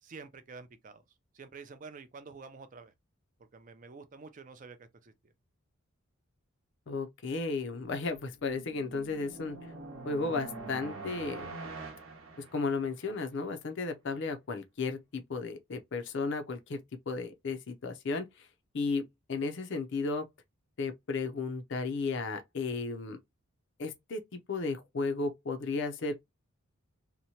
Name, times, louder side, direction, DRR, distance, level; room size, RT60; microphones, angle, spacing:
voice 1, 0.0-1.0 1.3-2.9 3.5-5.3, right 4 dB, 35° right, 0.4 m, -49 dB
voice 2, 6.9-9.6 10.0-11.5 12.4-16.8 17.1-18.5 18.7-20.3 20.8-23.2 23.8-26.1, left 4 dB, 55° left, 0.5 m, -34 dB
sound 1, 8.2-13.1, right 3 dB, 75° right, 0.8 m, -44 dB
2.9 x 2.1 x 2.7 m
head